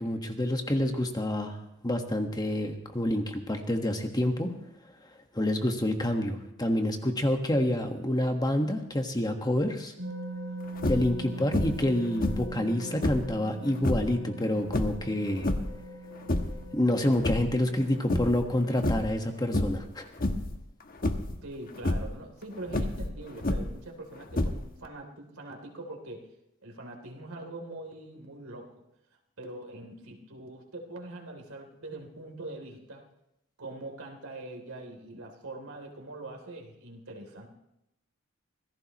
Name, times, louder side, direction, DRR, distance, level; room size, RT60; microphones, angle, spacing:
voice 1, 0.0-1.6 1.8-4.5 5.3-9.9 10.9-15.5 16.7-20.0, left 1 dB, 20° left, 4 dB, 1.5 m, -28 dB
sound 1, 10.0-19.1, right 1 dB, 55° right, 6.1 m, -42 dB
sound 2, 10.8-11.2 11.5-11.9 12.2-13.3 13.8-14.1 14.7-15.8 16.1-16.7 17.0-17.8 18.1-18.5 18.8-19.2 19.5-19.9 20.2-20.6 21.0-21.4 21.8-22.1 22.7-23.8 24.3-24.9, left 1 dB, 45° left, 1.2 m, -29 dB
voice 2, 21.4-26.3 26.6-28.7 29.4-33.0 33.6-37.5, right 2 dB, 85° right, 2 dB, 3.2 m, -43 dB
26.0 x 17.5 x 3.1 m, 0.87 s
head